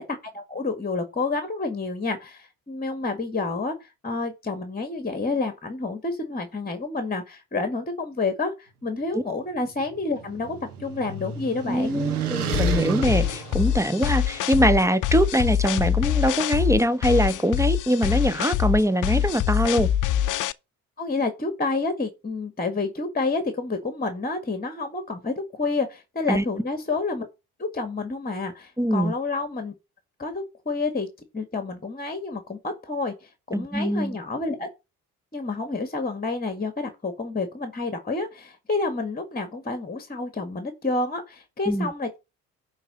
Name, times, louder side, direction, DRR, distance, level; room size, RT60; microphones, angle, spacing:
voice 1, 0.0-12.0 21.0-27.3 27.6-29.7 30.2-31.1 31.3-34.7 35.3-42.2, left 3 dB, 20° left, 2.0 m, -29 dB
sound 1, 9.7-14.5, right 7 dB, 85° right, 1.7 m, -31 dB
voice 2, 11.7-19.9 26.3-26.4 28.8-29.1 33.5-34.2 41.7-41.9, right 1 dB, 5° right, 1.2 m, -23 dB
sound 2, 12.5-20.5, left 11 dB, 45° left, 0.7 m, -24 dB
11.0 x 4.0 x 7.0 m
figure-of-eight pair, 50°, 44 cm